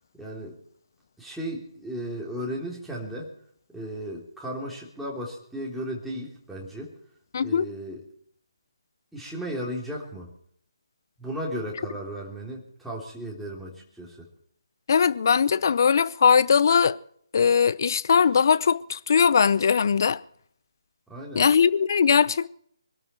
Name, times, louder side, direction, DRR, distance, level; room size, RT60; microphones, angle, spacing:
voice 1, 0.2-0.6 1.2-3.3 3.7-6.9 7.4-8.0 9.1-10.3 11.2-14.3 21.1-21.5, equal, ahead, 3.2 m, -35 dB
voice 2, 7.3-7.7 14.9-17.0 17.3-20.2 21.3-22.5, left 6 dB, 45° left, 0.7 m, -20 dB
24.5 x 13.0 x 4.4 m
figure-of-eight pair, 150°, 3 cm